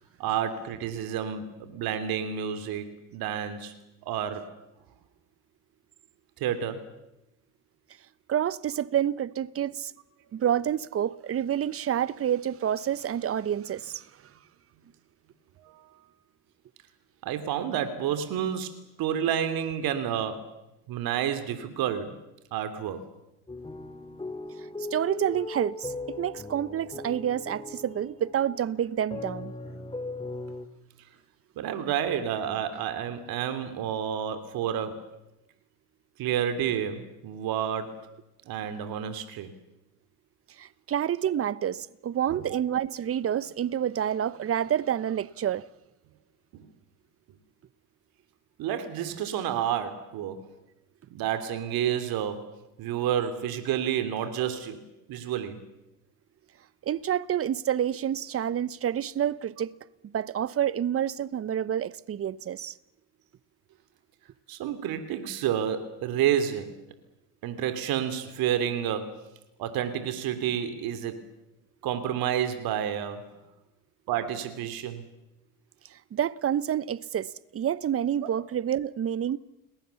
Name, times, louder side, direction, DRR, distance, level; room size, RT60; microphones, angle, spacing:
voice 1, 0.2-3.7 4.0-4.5 6.4-6.8 15.6-15.9 17.2-18.7 19.0-20.5 20.9-22.2 22.5-23.0 31.6-35.0 36.2-38.0 38.5-39.5 42.3-42.6 46.5-46.6 48.6-50.4 51.1-52.5 52.8-54.8 55.1-55.6 64.5-66.7 67.4-69.2 69.6-71.2 71.8-73.4 74.1-75.0, right 9 dB, 55° right, 3.0 m, -30 dB
voice 2, 8.3-9.9 10.3-14.1 24.8-29.5 40.6-45.7 56.8-59.8 60.1-62.8 75.9-79.4, right 10 dB, 35° right, 1.0 m, -28 dB
sound 1, 23.5-30.7, left 3 dB, 10° left, 2.4 m, -39 dB
30.0 x 21.0 x 7.1 m
hypercardioid pair, 75°, 42 cm